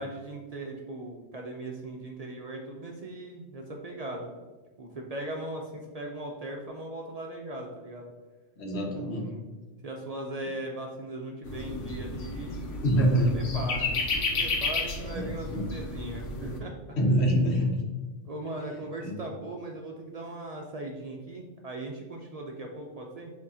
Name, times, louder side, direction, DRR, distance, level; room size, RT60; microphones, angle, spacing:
voice 1, 0.0-4.4 4.8-8.1 9.0-9.4 9.8-12.7 13.3-17.0 18.2-23.3, right 1 dB, 55° right, 0 dB, 0.4 m, -39 dB
voice 2, 8.6-9.3 12.8-13.4 15.0-15.7 17.0-17.8 19.0-19.2, equal, 65° left, 0 dB, 1.1 m, -25 dB
sound 1, 11.4-16.6, left 3 dB, 85° left, 1.0 m, -32 dB
6.0 x 2.7 x 2.7 m, 1.3 s
omnidirectional pair, 1.2 m